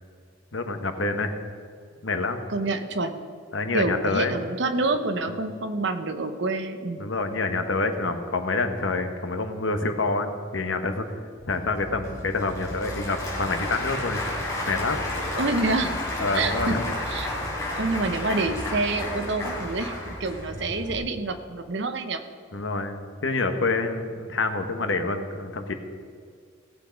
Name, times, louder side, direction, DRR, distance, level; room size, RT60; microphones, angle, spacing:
voice 1, 0.5-1.3 2.0-2.4 3.5-4.3 5.3-5.4 7.0-11.1 11.5-14.3 14.7-15.0 16.2-16.8 22.5-25.7, left 3 dB, 80° left, 7 dB, 1.1 m, -27 dB
voice 2, 2.5-3.2 3.7-7.1 15.4-16.1 16.3-16.8 17.1-17.3 17.8-19.9 20.2-22.2, right 3 dB, 65° right, 8 dB, 0.9 m, -27 dB
Applause / Crowd, 11.4-21.0, left 1 dB, 15° left, 4.1 m, -32 dB
17.5 x 8.0 x 5.2 m, 2.2 s
head